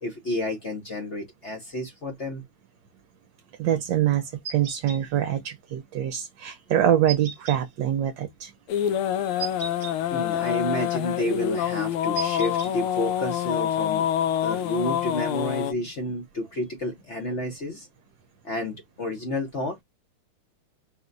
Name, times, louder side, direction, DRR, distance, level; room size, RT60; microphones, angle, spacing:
voice 1, 0.0-2.4 10.1-14.0 14.4-17.9 18.4-19.8, left 1 dB, 50° left, 0.8 m, -30 dB
voice 2, 3.6-8.5, right 11 dB, 65° right, 1.2 m, -24 dB
sound 1, 4.4-5.0 7.1-7.6 9.4-9.9 12.1-12.7, right 7 dB, 50° right, 0.5 m, -35 dB
sound 2, 8.7-15.7, left 10 dB, 80° left, 1.5 m, -26 dB
4.8 x 2.2 x 3.8 m
omnidirectional pair, 2.4 m